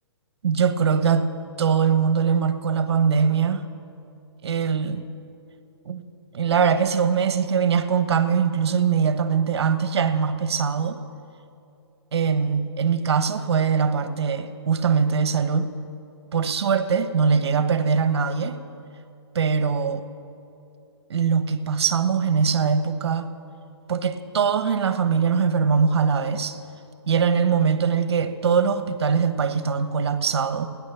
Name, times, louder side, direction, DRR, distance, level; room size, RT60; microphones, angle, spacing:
voice 1, 0.4-1.3 1.6-3.6 4.4-5.1 5.9-6.0 6.3-11.0 12.1-15.7 16.3-18.6 19.3-20.0 21.1-23.3 23.9-26.6 27.1-30.6, right 6 dB, 65° right, 10 dB, 1.2 m, -22 dB
17.5 x 10.0 x 7.1 m, 2.6 s
hypercardioid pair, 165°, 15 cm